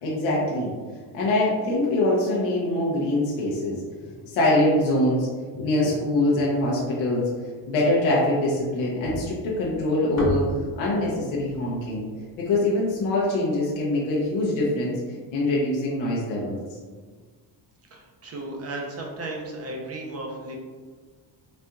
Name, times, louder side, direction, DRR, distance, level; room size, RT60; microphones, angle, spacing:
voice 1, 0.0-0.7 1.1-5.3 5.5-12.0 12.4-15.0 15.3-16.6, left 1 dB, 75° left, -5 dB, 0.9 m, -24 dB
sound 1, 9.0-13.3, left 1 dB, 35° left, 1.1 m, -34 dB
voice 2, 17.9-20.5, right 2 dB, 30° right, 0 dB, 0.7 m, -35 dB
4.2 x 2.5 x 2.3 m, 1.5 s
cardioid pair, 95°, 47 cm